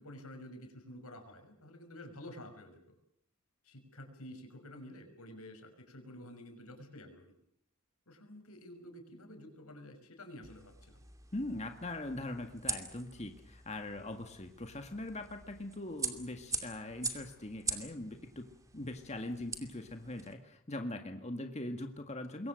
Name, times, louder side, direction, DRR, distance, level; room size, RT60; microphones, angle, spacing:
voice 1, 0.0-2.9 3.6-7.3 8.1-11.0, left 1 dB, 90° left, 6 dB, 5.9 m, -50 dB
sound 1, 10.4-20.3, right 4 dB, 15° right, 2.6 m, -43 dB
voice 2, 11.3-18.5 18.7-22.5, left 1 dB, 30° left, 6 dB, 1.8 m, -41 dB
26.5 x 22.5 x 6.5 m, 0.69 s
head